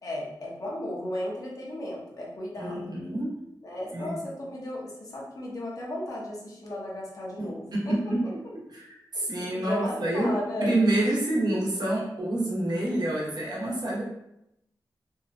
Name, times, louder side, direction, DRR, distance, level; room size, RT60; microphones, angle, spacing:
voice 1, 0.0-3.0 3.6-8.1 9.1-10.9, left 1 dB, 50° left, -4 dB, 0.8 m, -35 dB
voice 2, 2.6-3.4 3.9-4.2 7.4-8.2 8.7-10.3 10.6-14.0, right 1 dB, 65° right, -5 dB, 0.9 m, -27 dB
2.7 x 2.2 x 2.5 m, 0.83 s
wide cardioid pair, 100°, 8 cm